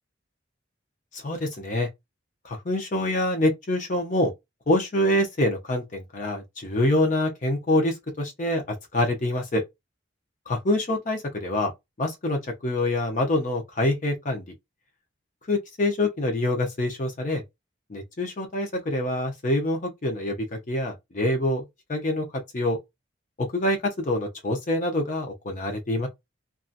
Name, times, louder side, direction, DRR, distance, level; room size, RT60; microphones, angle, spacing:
voice 1, 1.1-1.9 2.4-4.3 4.7-9.6 10.5-11.7 12.0-14.4 15.5-17.4 17.9-22.3 22.5-22.8 23.4-26.1, left 1 dB, 40° left, 0.6 m, -26 dB
2.6 x 2.3 x 2.4 m
head